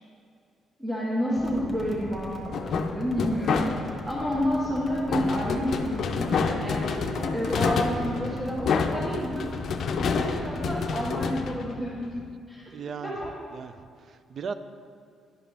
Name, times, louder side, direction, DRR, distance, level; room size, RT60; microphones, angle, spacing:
voice 1, 0.8-6.9 7.3-9.5 9.9-12.7 13.0-13.3, equal, 20° right, -8 dB, 1.4 m, -30 dB
sound 1, 1.3-11.3, left 1 dB, 30° left, 1.3 m, -40 dB
sound 2, 2.5-4.1 5.1-12.2, left 5 dB, 65° left, 0.5 m, -28 dB
Bowed string instrument, 5.1-10.3, right 1 dB, 90° right, 0.7 m, -41 dB
voice 2, 7.9-8.5 12.7-13.2 13.5-14.5, right 6 dB, 55° right, 12 dB, 0.4 m, -38 dB
11.0 x 5.0 x 3.3 m, 2.2 s
cardioid pair, 90°, 0 cm